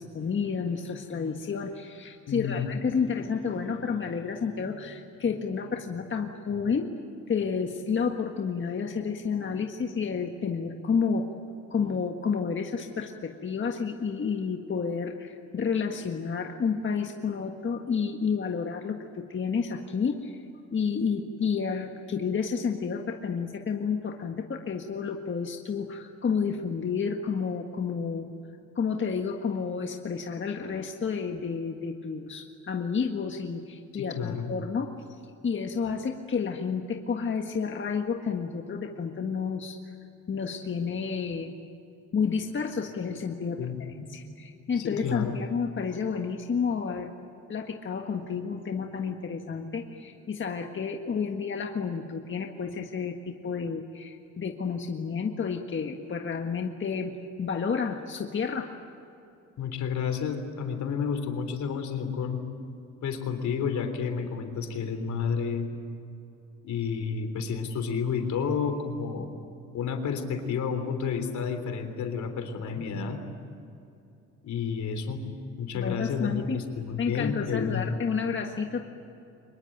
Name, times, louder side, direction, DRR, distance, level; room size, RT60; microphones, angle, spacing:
voice 1, 0.0-6.9 7.3-11.3 11.7-20.4 20.7-28.3 28.7-35.2 35.4-39.9 40.3-41.5 42.1-43.6 44.1-47.1 47.5-57.1 57.4-58.7 75.7-76.6 77.0-78.8, left 6 dB, 40° left, 3 dB, 1.7 m, -30 dB
voice 2, 2.3-2.7 33.9-34.5 43.6-44.2 44.8-45.4 59.6-62.4 63.0-65.7 66.6-69.3 69.7-73.2 74.4-75.2 75.6-77.9, left 6 dB, 70° left, 7 dB, 3.5 m, -31 dB
24.5 x 21.0 x 9.2 m, 2.7 s
cardioid pair, 90°, 30 cm